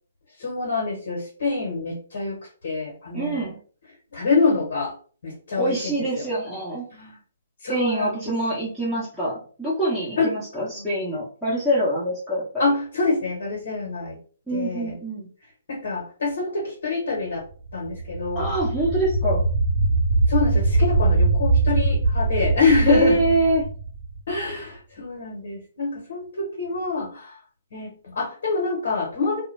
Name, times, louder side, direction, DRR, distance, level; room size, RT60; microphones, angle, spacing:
voice 1, 0.4-3.5 4.1-4.9 5.2-6.3 6.9-7.2 7.6-8.3 10.2-10.3 10.6-10.9 12.6-14.2 14.5-15.0 15.7-17.4 17.7-18.5 20.3-23.2 24.3-27.4 27.7-29.4, left 3 dB, 65° left, -3 dB, 1.2 m, -26 dB
voice 2, 3.1-3.5 5.6-6.9 7.7-12.6 14.5-15.3 18.3-19.5 22.9-23.7, right 1 dB, ahead, -12 dB, 1.0 m, -25 dB
sound 1, 17.7-24.5, right 3 dB, 40° right, 0.6 m, -22 dB
2.3 x 2.2 x 3.2 m, 0.42 s
figure-of-eight pair, 130°, 0 cm